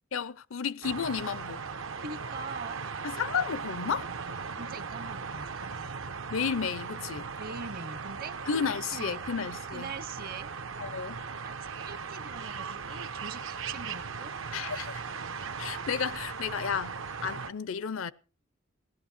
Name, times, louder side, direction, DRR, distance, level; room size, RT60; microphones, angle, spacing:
voice 1, 0.1-1.6 3.0-4.1 6.3-7.3 8.5-9.9 10.8-11.2 14.5-14.9 15.6-18.1, left 6 dB, 75° left, 0.6 m, -32 dB
sound 1, 0.8-17.5, right 5 dB, 75° right, 0.9 m, -38 dB
voice 2, 2.0-3.0 4.6-5.9 7.4-8.4 8.9-9.2 9.7-10.5 10.9-11.0 11.4-14.9, right 4 dB, 50° right, 0.9 m, -43 dB
17.0 x 12.0 x 4.3 m
head